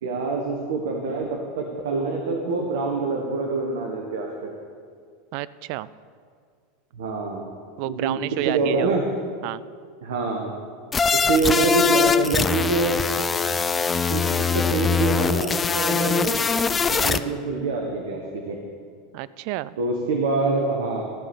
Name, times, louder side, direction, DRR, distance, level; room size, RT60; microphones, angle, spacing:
voice 1, 0.0-4.5 6.9-7.5 7.8-9.0 10.0-10.5 11.1-13.0 14.1-14.2 14.5-16.4 16.9-18.6 19.8-21.0, right 3 dB, 75° right, 1 dB, 1.3 m, -25 dB
voice 2, 5.3-5.9 7.8-8.9 9.4-9.6 19.1-19.8, right 16 dB, 60° right, 17 dB, 0.3 m, -30 dB
sound 1, 10.9-17.2, left 5 dB, 25° left, 0.4 m, -22 dB
13.5 x 5.1 x 7.3 m, 2.1 s
hypercardioid pair, 90°, 0 cm